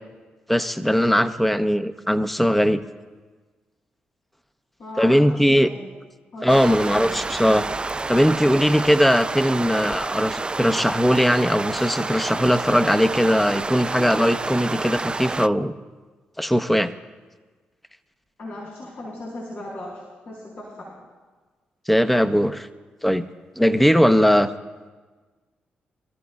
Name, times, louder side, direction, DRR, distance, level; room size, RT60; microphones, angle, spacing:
voice 1, 0.5-2.8 5.0-5.7 6.4-7.8 8.1-15.7 16.4-16.9 21.9-22.7 23.0-23.2 23.6-24.5, equal, 5° left, 10 dB, 0.8 m, -19 dB
voice 2, 4.8-5.9 6.3-7.2 18.4-20.9, left 1 dB, 70° left, -6 dB, 4.9 m, -37 dB
sound 1, 6.5-15.5, right 3 dB, 25° right, 0.3 m, -29 dB
25.0 x 13.5 x 2.3 m, 1.3 s
supercardioid pair, 50°, 4 cm